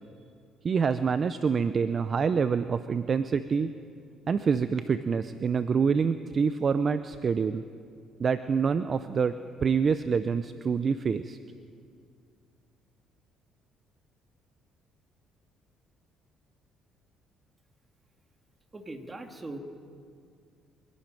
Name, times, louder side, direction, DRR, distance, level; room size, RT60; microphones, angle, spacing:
voice 1, 0.6-3.7 4.3-7.6 8.2-9.4 9.6-11.4, right 6 dB, 45° right, 12 dB, 0.6 m, -26 dB
voice 2, 18.7-19.6, right 2 dB, 25° right, 5 dB, 2.3 m, -40 dB
24.5 x 12.0 x 9.2 m, 2.3 s
supercardioid pair, 75°, 0 cm